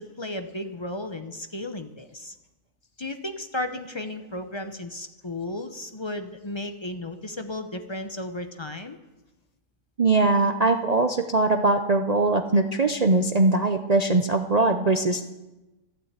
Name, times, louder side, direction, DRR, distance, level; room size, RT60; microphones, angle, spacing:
voice 1, 0.0-2.3 3.0-9.0, left 1 dB, 30° left, 7 dB, 0.5 m, -34 dB
voice 2, 10.0-15.2, right 2 dB, 80° right, 6 dB, 0.3 m, -21 dB
12.5 x 12.0 x 8.1 m, 1.1 s
omnidirectional pair, 1.8 m